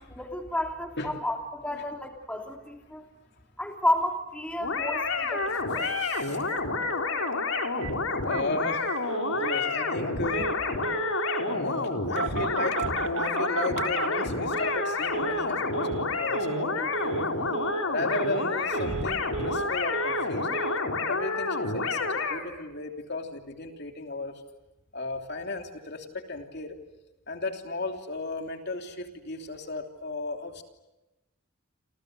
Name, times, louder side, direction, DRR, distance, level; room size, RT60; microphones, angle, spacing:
voice 1, 0.1-3.0 3.6-5.9, left 1 dB, 5° left, 3 dB, 2.9 m, -31 dB
sound 1, 4.6-22.4, left 3 dB, 80° left, 4.3 m, -29 dB
Telephone, 5.4-5.5 5.8-5.9 6.1-6.2 6.5-6.9 7.2-7.3 7.5-7.9 8.3-8.4 8.9-9.6 10.3-10.6 10.8-11.6 12.2-14.9 15.1-15.5 15.7-16.1 16.3-16.7 16.9-17.3 17.5-17.9 18.1-18.5 18.7-19.7 19.9-20.3 20.5-20.8, right 6 dB, 65° right, 1.5 m, -34 dB
voice 2, 5.8-6.4 8.2-8.9 9.3-10.5 11.4-17.2 17.9-20.6 21.1-24.4 24.9-26.8 27.3-30.6, left 2 dB, 55° left, 5 dB, 3.1 m, -35 dB
29.5 x 28.0 x 6.7 m, 1.0 s
head